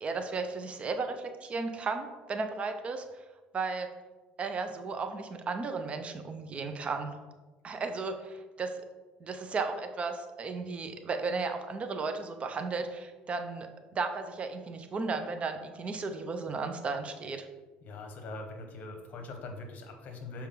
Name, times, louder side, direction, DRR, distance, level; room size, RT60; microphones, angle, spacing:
voice 1, 0.0-3.0 3.5-3.9 4.4-7.1 7.6-8.7 9.2-13.7 13.9-17.5, right 4 dB, 35° right, 7 dB, 0.7 m, -34 dB
voice 2, 17.8-20.5, left 2 dB, 50° left, 4 dB, 1.2 m, -42 dB
7.2 x 4.4 x 3.8 m, 1.2 s
cardioid pair, 110°, 4 cm